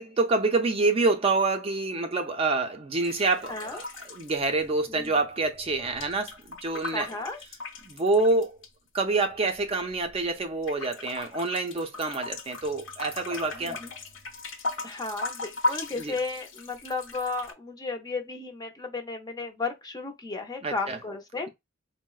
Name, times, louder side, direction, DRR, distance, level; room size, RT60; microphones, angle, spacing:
voice 1, 0.0-7.1 7.8-8.6 8.9-13.8 15.9-16.1 20.6-21.0, right 3 dB, 30° right, 0.5 m, -27 dB
sound 1, 3.0-5.1 5.3-8.7 9.3-10.3 10.6-17.5, left 2 dB, 65° left, 0.8 m, -37 dB
voice 2, 3.5-3.8 4.9-5.1 6.9-7.4 13.6-13.9 14.8-21.5, left 3 dB, 20° left, 0.6 m, -34 dB
4.5 x 2.0 x 2.3 m
head